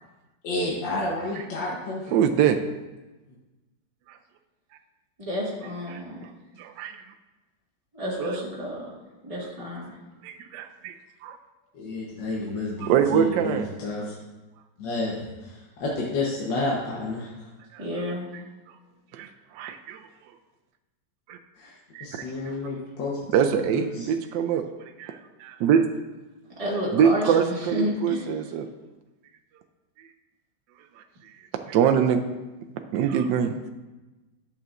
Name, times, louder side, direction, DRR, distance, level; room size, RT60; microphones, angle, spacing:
voice 1, 0.4-2.0 11.7-14.1 14.8-17.3 21.6-21.7 22.0-24.1, left 2 dB, 75° left, -3 dB, 1.7 m, -30 dB
voice 2, 2.1-2.6 5.9-6.3 6.6-6.9 10.2-10.9 11.2-11.4 12.8-13.7 19.1-19.3 19.5-20.0 21.3-21.4 21.9-22.2 23.3-24.6 25.0-25.1 25.4-25.8 26.9-28.7 31.7-32.2 32.9-33.5, right 8 dB, 75° right, 5 dB, 1.2 m, -23 dB
voice 3, 5.2-6.2 7.9-8.9 9.2-9.9 17.8-18.3 22.2-22.6 26.6-28.4, equal, 20° right, -5 dB, 1.7 m, -31 dB
10.5 x 6.8 x 2.5 m, 1.1 s
omnidirectional pair, 2.0 m